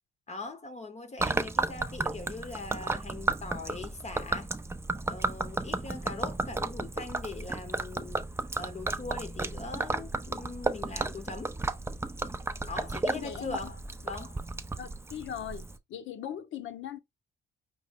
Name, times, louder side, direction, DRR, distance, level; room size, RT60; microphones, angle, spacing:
voice 1, 0.3-4.5 5.1-8.3 8.6-11.5 12.7-14.4, left 3 dB, 35° left, 0.8 m, -41 dB
Gurgling / Liquid, 1.2-15.8, right 2 dB, 15° right, 0.4 m, -33 dB
voice 2, 13.1-13.7 14.8-17.0, left 9 dB, 75° left, 0.9 m, -39 dB
5.4 x 2.6 x 3.5 m
cardioid pair, 90°, 20 cm